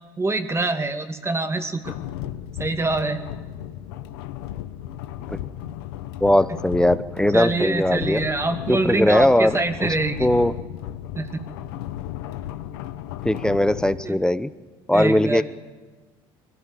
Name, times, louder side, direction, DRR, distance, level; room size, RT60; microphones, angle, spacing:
voice 1, 0.2-1.9 2.6-3.2 7.3-10.3 11.2-11.4 14.0-14.2 14.9-15.4, right 2 dB, 20° right, 7 dB, 2.4 m, -25 dB
sound 1, 1.8-14.0, left 12 dB, 90° left, 0.9 m, -35 dB
voice 2, 6.2-8.2 8.7-9.9 10.2-10.5 13.2-14.5 14.9-15.4, left 1 dB, 5° left, 14 dB, 0.8 m, -20 dB
22.0 x 16.5 x 9.1 m, 1.3 s
supercardioid pair, 75°, 12 cm